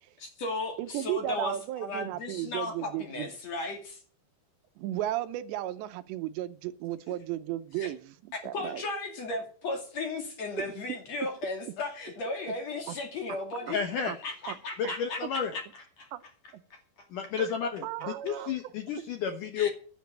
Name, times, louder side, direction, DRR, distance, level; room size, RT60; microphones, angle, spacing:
voice 1, 0.2-4.0 7.8-7.9 8.3-13.8 14.2-16.1 16.7-16.8 19.6-19.7, left 2 dB, 45° left, 3.0 m, -36 dB
voice 2, 0.8-3.3 4.8-8.8 10.6-10.7 12.9-13.0 13.6-13.8 14.1-14.2 14.5-14.6 14.8-14.9 15.2-15.3 16.1-16.2 17.4-17.5 17.8-18.7, right 14 dB, 85° right, 3.1 m, -35 dB
voice 3, 13.7-14.2 14.8-15.5 17.1-19.7, left 7 dB, 70° left, 2.1 m, -31 dB
10.5 x 8.3 x 9.2 m
omnidirectional pair, 5.0 m